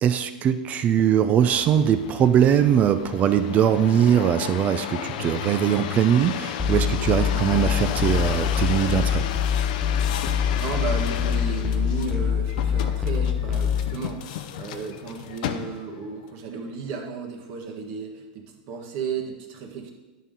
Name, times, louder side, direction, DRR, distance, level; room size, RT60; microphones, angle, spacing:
voice 1, 0.0-9.2, right 9 dB, 30° right, 11 dB, 0.4 m, -21 dB
sound 1, 1.5-16.1 16.7-17.2, left 9 dB, 65° left, 0.5 m, -33 dB
sound 2, 6.6-14.0, left 8 dB, 10° left, 0.8 m, -24 dB
voice 2, 10.5-19.9, right 5 dB, 55° right, 2 dB, 1.5 m, -34 dB
10.5 x 5.6 x 3.8 m, 1.2 s
hypercardioid pair, 125°, 5 cm